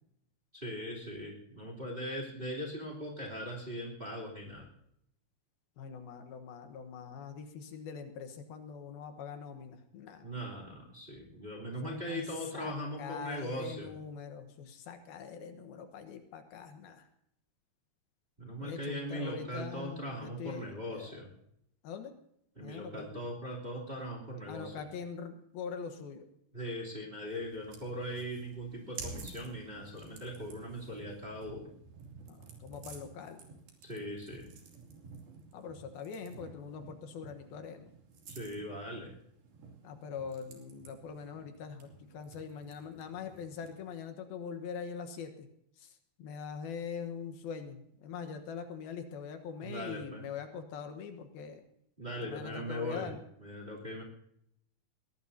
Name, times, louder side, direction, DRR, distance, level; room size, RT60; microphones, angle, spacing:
voice 1, 0.5-4.7 10.2-13.9 18.4-21.3 22.6-24.7 26.5-31.7 33.8-34.5 38.3-39.1 49.6-50.2 52.0-53.1 53.4-54.0, equal, 15° right, 0 dB, 2.9 m, -40 dB
voice 2, 5.8-10.3 11.8-12.3 12.5-17.1 18.6-21.2 21.8-22.2 22.6-23.1 24.5-26.3 32.3-33.4 35.5-37.9 39.8-45.5 45.8-51.6 52.2-53.2, left 6 dB, 75° left, 7 dB, 3.0 m, -43 dB
sound 1, 27.3-43.9, right 4 dB, 75° right, 4.6 m, -52 dB
22.0 x 17.5 x 2.8 m, 0.75 s
omnidirectional pair, 4.4 m